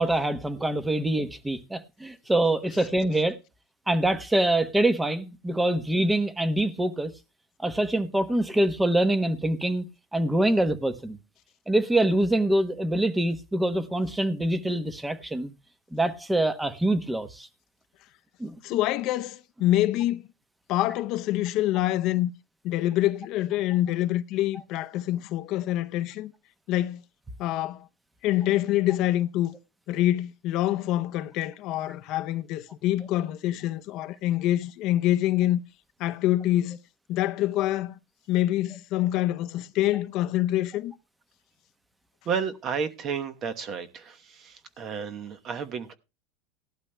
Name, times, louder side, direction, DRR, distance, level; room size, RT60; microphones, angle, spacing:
voice 1, 0.0-3.4 3.9-7.1 7.6-9.8 10.1-11.2 11.7-15.5 15.9-17.5 18.4-18.5, right 1 dB, 5° right, 0.9 m, -25 dB
voice 2, 18.6-20.2 20.7-22.3 22.6-26.3 26.7-27.0 27.4-27.9 28.2-29.5 29.9-35.6 36.0-36.8 37.1-38.0 38.3-40.9, left 14 dB, 50° left, 0.6 m, -26 dB
voice 3, 42.2-46.0, right 6 dB, 35° right, 1.0 m, -32 dB
18.0 x 12.0 x 2.2 m
supercardioid pair, 135°, 0 cm